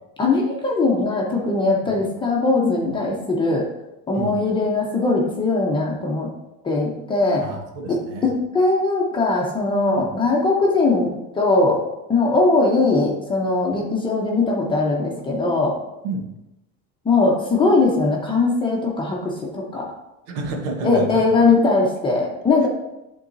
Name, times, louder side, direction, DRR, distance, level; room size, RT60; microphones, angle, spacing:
voice 1, 0.2-3.6 4.1-6.3 6.6-7.4 7.9-11.8 12.1-15.8 17.0-19.9 20.8-22.7, left 3 dB, 15° left, -1 dB, 0.8 m, -20 dB
voice 2, 7.4-8.3 9.9-10.1 16.0-16.3 20.3-21.2, right 3 dB, 70° right, 3 dB, 1.2 m, -30 dB
11.0 x 3.7 x 2.7 m, 0.94 s
cardioid pair, 165°, 33 cm